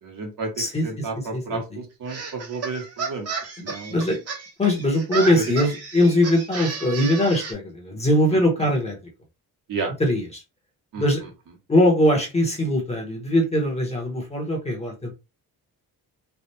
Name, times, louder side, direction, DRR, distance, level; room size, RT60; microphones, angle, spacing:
voice 1, 0.0-0.5 0.8-3.3 3.6-3.9 9.7-9.9 10.9-11.0, right 4 dB, 60° right, 1.5 m, -32 dB
voice 2, 0.6-1.8 3.7-4.2 4.6-9.0 10.0-10.4 11.0-11.2 11.7-15.1, left 1 dB, 15° left, 1.1 m, -21 dB
sound 1, 2.1-7.5, right 5 dB, 40° right, 1.2 m, -33 dB
3.4 x 2.4 x 4.2 m
cardioid pair, 160°, 38 cm